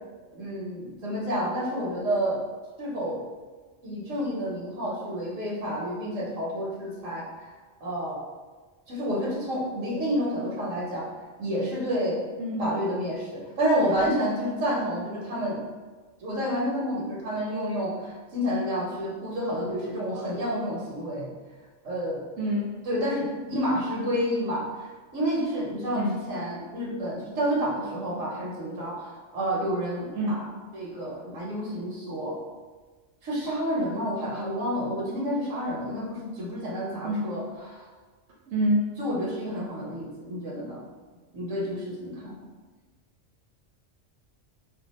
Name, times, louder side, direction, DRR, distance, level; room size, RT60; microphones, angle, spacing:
voice 1, 0.3-2.4 2.8-3.2 3.8-7.3 7.8-8.2 8.9-11.1 11.4-12.2 12.6-15.6 16.2-21.3 21.8-22.2 22.9-30.5 30.7-32.4 33.2-37.8 39.0-40.8 41.3-42.4, equal, 85° right, -4 dB, 1.2 m, -29 dB
voice 2, 12.4-12.7 22.4-22.7 26.0-26.2 30.1-30.4 37.0-37.4 38.5-38.8, equal, 65° right, -4 dB, 0.9 m, -26 dB
2.7 x 2.2 x 4.0 m, 1.3 s
omnidirectional pair, 1.3 m